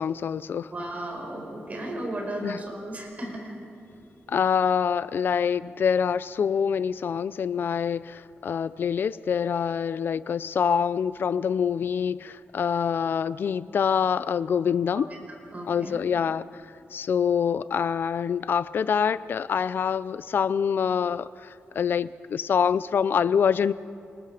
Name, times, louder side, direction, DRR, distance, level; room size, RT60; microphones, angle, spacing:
voice 1, 0.0-0.7 2.4-2.6 4.3-15.1 15.7-16.4 16.9-23.7, left 7 dB, 55° left, 16 dB, 0.5 m, -25 dB
voice 2, 0.7-3.5 14.9-15.0 15.5-16.0, right 1 dB, 35° right, 1 dB, 5.5 m, -35 dB
29.0 x 20.0 x 5.0 m, 2.7 s
wide cardioid pair, 130°, 4 cm